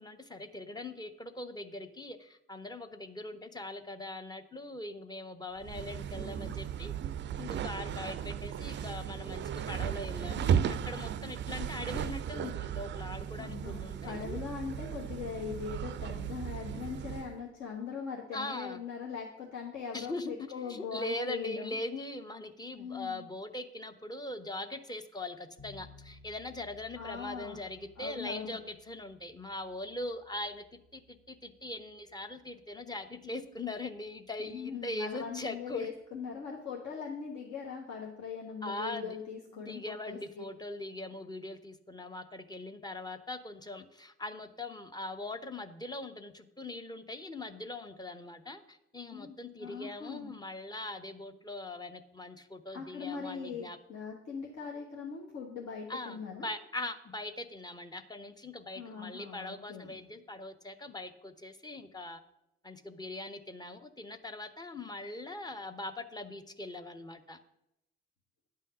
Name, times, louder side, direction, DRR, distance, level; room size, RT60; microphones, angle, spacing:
voice 1, 0.0-6.9 7.4-14.4 18.3-18.8 19.9-30.6 30.9-35.9 38.6-39.2 39.5-53.8 55.9-62.2 62.6-67.4, left 2 dB, 10° left, 9 dB, 0.8 m, -41 dB
sound 1, 5.6-17.3, right 9 dB, 35° right, 0.5 m, -35 dB
voice 2, 13.4-21.8 22.7-23.2 27.0-27.6 28.0-28.6 34.4-40.4 49.1-49.3 49.6-50.3 52.7-56.5 58.8-60.0, left 6 dB, 50° left, -1 dB, 1.3 m, -41 dB
sound 2, 25.6-36.5, left 2 dB, 30° left, 1.5 m, -60 dB
10.0 x 5.6 x 6.4 m, 0.88 s
figure-of-eight pair, 45°, 33 cm